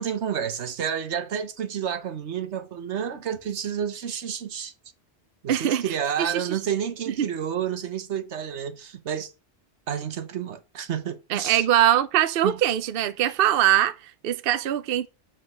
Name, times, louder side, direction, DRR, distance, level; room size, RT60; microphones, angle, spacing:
voice 1, 0.0-4.7 5.4-9.3 9.9-11.6 12.4-12.6, right 8 dB, 80° right, 1.3 m, -30 dB
voice 2, 5.5-5.8 6.2-6.6 7.2-7.3 11.3-15.1, right 12 dB, 60° right, 0.7 m, -22 dB
7.5 x 5.1 x 6.2 m
omnidirectional pair, 1.1 m